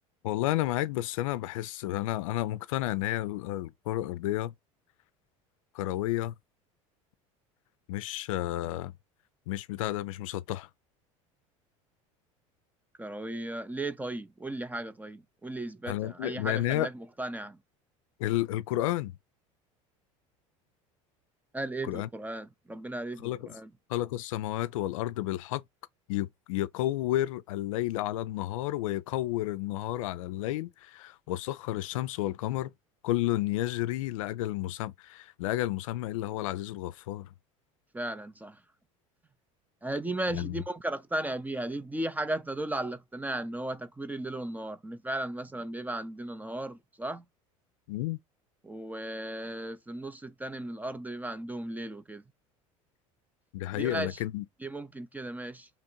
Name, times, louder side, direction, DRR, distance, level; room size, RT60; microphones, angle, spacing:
voice 1, 0.2-4.5 5.7-6.3 7.9-8.9 9.5-10.7 15.9-16.9 18.2-19.2 21.8-22.1 23.2-23.5 23.9-25.6 26.1-32.7 33.0-37.3 40.3-40.6 47.9-48.2 53.5-54.4, left 15 dB, 80° left, 0.4 m, -31 dB
voice 2, 13.0-17.6 21.5-23.7 37.9-38.6 39.8-47.2 48.6-52.2 53.7-54.2 54.6-55.7, right 1 dB, 10° right, 0.4 m, -36 dB
3.0 x 2.5 x 4.4 m
hypercardioid pair, 90°, 17 cm